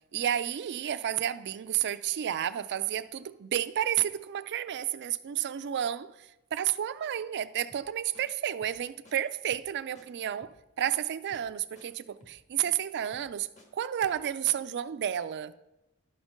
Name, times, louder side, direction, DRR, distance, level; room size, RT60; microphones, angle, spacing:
voice 1, 0.1-10.5 10.8-13.5 13.7-15.5, right 10 dB, 50° right, 0.4 m, -31 dB
sound 1, 7.7-8.3 8.6-8.8 9.0-9.2 9.5-9.7 10.0-10.1 10.4-10.6 10.9-11.0 11.3-11.5 11.8-11.9 12.2-12.4 12.7-12.8 13.1-13.7 14.0-14.2 14.5-14.6, left 1 dB, 35° left, 1.5 m, -56 dB
11.5 x 4.4 x 5.7 m
head